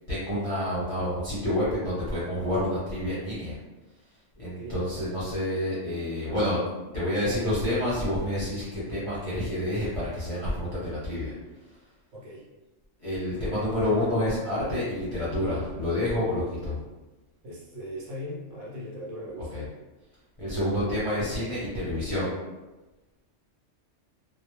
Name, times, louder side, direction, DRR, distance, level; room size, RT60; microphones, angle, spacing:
voice 1, 0.1-3.6 3.9-6.6 6.9-11.9 13.0-16.8 19.5-19.6 20.4-22.3, left 1 dB, 35° left, -10 dB, 0.6 m, -29 dB
voice 2, 4.4-5.2 12.1-12.5 13.4-13.7 17.4-19.7, equal, 70° right, -5 dB, 1.0 m, -40 dB
2.2 x 2.0 x 2.9 m, 1.1 s
omnidirectional pair, 1.3 m